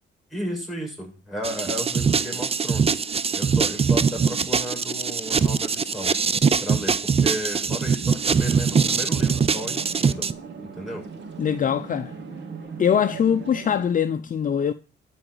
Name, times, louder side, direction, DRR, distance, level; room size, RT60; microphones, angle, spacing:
voice 1, 0.3-6.1 6.6-10.3 10.6-11.1, equal, ahead, 7.3 m, -34 dB
sound 1, 1.4-10.3, right 5 dB, 30° right, 0.6 m, -22 dB
sound 2, 8.7-13.9, right 5 dB, 60° right, 2.9 m, -38 dB
voice 2, 11.4-12.1 12.8-14.7, left 8 dB, 45° left, 0.7 m, -22 dB
12.0 x 5.1 x 7.8 m
cardioid pair, 90°, 20 cm